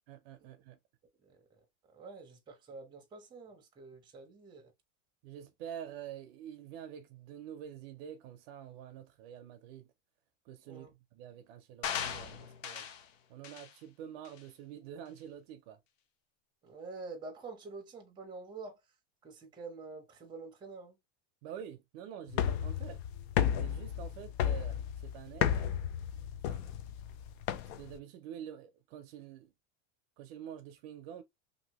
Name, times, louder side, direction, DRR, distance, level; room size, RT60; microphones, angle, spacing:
voice 1, 0.1-0.8 5.2-9.9 10.5-12.9 13.3-15.8 21.4-23.0 23.5-25.9 26.5-26.6 27.8-29.5 30.2-31.2, right 9 dB, 55° right, 0.5 m, -47 dB
voice 2, 1.9-4.7 10.6-10.9 16.6-18.8 19.2-20.9, right 3 dB, 10° right, 0.7 m, -47 dB
sound 1, 11.8-13.1 13.4-13.7 14.3-14.4, left 8 dB, 85° left, 0.8 m, -38 dB
sound 2, 22.3-28.0, left 9 dB, 55° left, 0.5 m, -33 dB
2.7 x 2.6 x 2.9 m
supercardioid pair, 160°, 37 cm